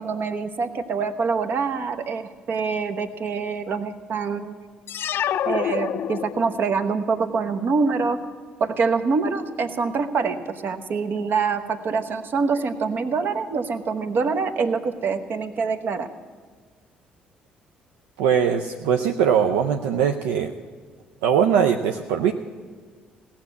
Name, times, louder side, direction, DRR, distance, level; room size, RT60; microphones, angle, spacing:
voice 1, 0.0-4.6 5.4-8.2 8.6-16.1, right 5 dB, 45° right, 8 dB, 1.0 m, -25 dB
sound 1, 4.9-6.7, left 10 dB, 50° left, 0.4 m, -27 dB
voice 2, 18.2-20.5 21.2-22.3, right 8 dB, 70° right, 5 dB, 0.5 m, -21 dB
17.0 x 7.3 x 9.4 m, 1.5 s
figure-of-eight pair, 50°, 5 cm